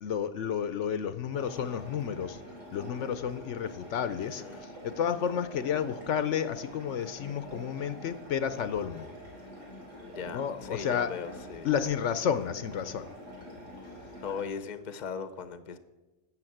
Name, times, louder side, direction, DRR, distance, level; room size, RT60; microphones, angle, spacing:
voice 1, 0.0-2.4 2.7-9.1 10.3-11.1 11.6-13.1, left 8 dB, 70° left, 13 dB, 1.0 m, -31 dB
Stream entering pipe, 1.3-14.4, equal, 80° right, 3.7 m, -46 dB
voice 2, 4.2-4.6 10.1-11.7 14.2-15.8, left 6 dB, 40° left, 12 dB, 0.8 m, -38 dB
12.0 x 7.7 x 7.8 m, 1.2 s
omnidirectional pair, 1.3 m